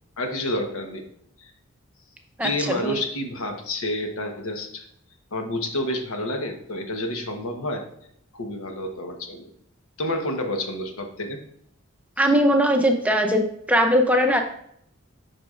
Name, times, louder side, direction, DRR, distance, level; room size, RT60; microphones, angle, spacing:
voice 1, 0.2-1.0 1.4-1.5 2.4-4.8 5.3-7.8 8.3-9.5 10.0-11.4, left 1 dB, 80° left, 4 dB, 1.1 m, -29 dB
voice 2, 2.4-3.0 12.2-13.4 13.7-14.4, equal, 5° right, 3 dB, 0.5 m, -20 dB
7.9 x 5.9 x 2.5 m, 0.69 s
head